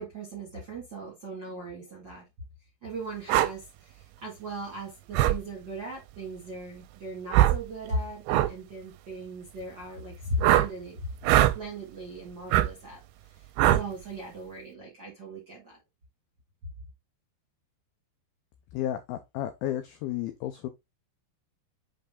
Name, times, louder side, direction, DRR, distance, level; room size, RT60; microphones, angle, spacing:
voice 1, 0.0-2.2 2.8-11.0 11.3-13.0 13.4-15.8, right 1 dB, 55° right, 1.3 m, -38 dB
sound 1, 3.3-3.5 5.1-5.4 7.3-7.6 8.3-8.5 10.4-10.7 11.2-11.6 12.5-12.7 13.6-13.9, right 14 dB, 85° right, 2.9 m, -21 dB
voice 2, 18.7-20.7, left 12 dB, 90° left, 2.1 m, -32 dB
7.8 x 3.4 x 3.6 m
omnidirectional pair, 5.1 m